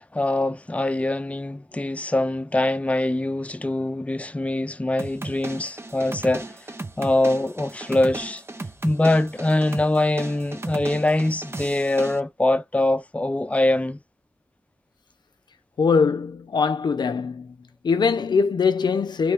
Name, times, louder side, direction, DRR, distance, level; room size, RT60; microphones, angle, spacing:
voice 1, 0.0-6.5 7.0-8.4 8.8-14.0, left 1 dB, 20° left, 0.4 m, -23 dB
sound 1, 5.0-12.2, right 2 dB, 35° right, 0.7 m, -36 dB
voice 2, 15.8-17.5 17.8-19.3, left 5 dB, 85° left, 0.4 m, -22 dB
3.1 x 3.0 x 3.4 m
cardioid pair, 45°, 7 cm